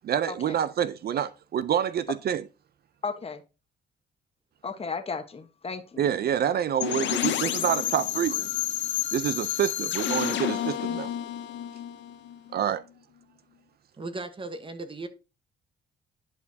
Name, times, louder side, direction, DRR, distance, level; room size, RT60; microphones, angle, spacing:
voice 1, 0.0-2.4 6.0-8.5 9.1-11.1 12.5-12.8, right 9 dB, 55° right, 0.4 m, -27 dB
voice 2, 3.0-3.4 4.6-6.1, left 5 dB, 30° left, 1.2 m, -35 dB
sound 1, 6.8-12.6, left 12 dB, 65° left, 0.7 m, -30 dB
voice 3, 14.0-15.1, right 2 dB, 25° right, 1.1 m, -36 dB
10.5 x 4.6 x 2.7 m
cardioid pair, 90°, 20 cm